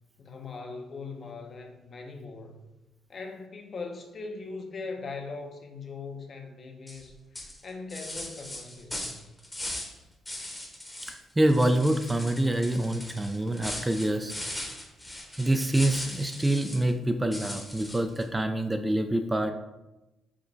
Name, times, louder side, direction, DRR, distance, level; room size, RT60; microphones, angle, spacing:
voice 1, 0.2-2.6 3.1-9.3, left 4 dB, 50° left, 3 dB, 0.7 m, -40 dB
sound 1, 6.9-7.1 7.4-10.0 10.3-11.2 11.5-16.9 17.3-18.2, left 1 dB, 10° left, 0.9 m, -39 dB
voice 2, 11.1-14.3 15.4-19.5, right 1 dB, 15° right, 7 dB, 0.3 m, -26 dB
5.0 x 2.2 x 3.9 m, 0.99 s
cardioid pair, 90°, 0 cm